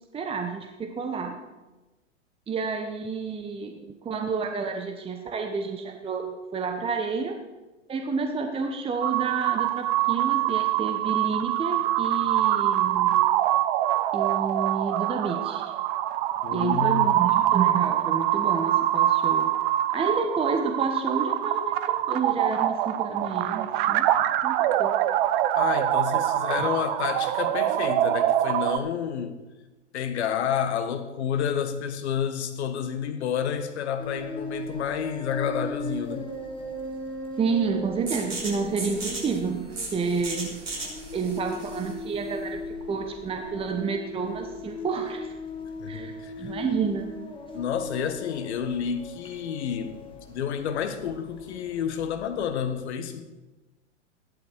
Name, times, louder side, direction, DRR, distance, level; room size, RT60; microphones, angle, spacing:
voice 1, 0.1-1.4 2.5-7.4 7.9-13.2 14.1-15.6 16.5-19.5 19.9-24.1 24.4-25.0 26.3-26.6 37.4-40.6 41.1-45.4 45.9-47.1, right 5 dB, 15° right, 1.1 m, -30 dB
sound 1, 9.0-28.8, right 13 dB, 45° right, 0.8 m, -24 dB
voice 2, 16.4-17.1 25.5-29.4 29.9-36.3 45.8-46.5 47.5-50.0 50.3-53.3, left 8 dB, 60° left, 1.6 m, -30 dB
sound 2, 34.0-52.9, left 2 dB, 15° left, 2.4 m, -39 dB
sound 3, 38.1-43.5, right 3 dB, 75° right, 5.6 m, -37 dB
14.5 x 11.5 x 4.8 m
hypercardioid pair, 100°, 37 cm